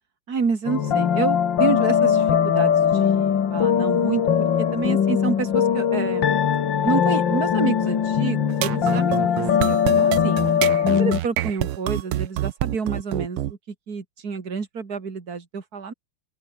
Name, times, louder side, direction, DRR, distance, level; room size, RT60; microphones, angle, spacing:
voice 1, 0.3-4.2 4.6-6.3 6.8-10.4 10.8-15.9, right 5 dB, 45° right, 3.1 m, -28 dB
sound 1, 0.7-11.2, left 8 dB, 60° left, 2.2 m, -20 dB
sound 2, 8.5-13.5, right 14 dB, 85° right, 1.7 m, -26 dB
open air
omnidirectional pair, 2.4 m